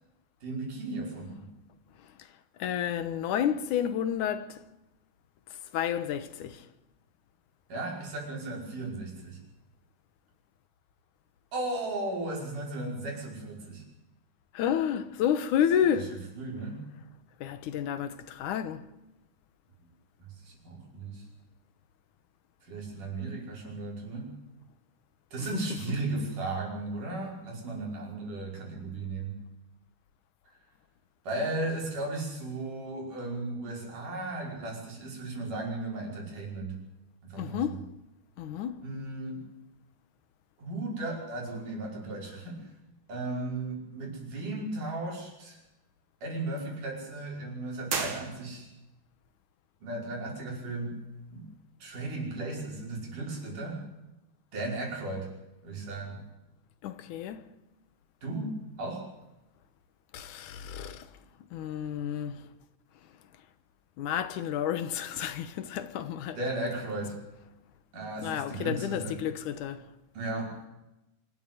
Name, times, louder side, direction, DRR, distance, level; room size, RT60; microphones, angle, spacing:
voice 1, 0.4-1.5 7.7-9.4 11.5-13.8 15.9-16.9 20.5-21.2 22.7-24.4 25.3-29.4 31.3-36.8 37.2-37.8 38.8-39.4 40.6-42.6 43.1-45.6 46.2-48.7 49.8-51.0 51.3-51.5 51.8-53.8 54.5-55.3 55.6-56.2 58.2-59.0 66.4-67.2 67.9-69.2 70.2-70.5, right 2 dB, 80° right, 7.0 m, -35 dB
voice 2, 2.6-4.6 5.7-6.6 14.5-16.2 17.4-18.9 37.4-37.8 38.4-38.8 56.8-57.5 60.1-61.1 61.5-62.5 64.0-66.4 68.2-69.8, left 9 dB, 75° left, 2.7 m, -30 dB
sound 1, 47.8-48.9, right 4 dB, 40° right, 2.9 m, -34 dB
25.5 x 13.0 x 9.3 m
omnidirectional pair, 3.6 m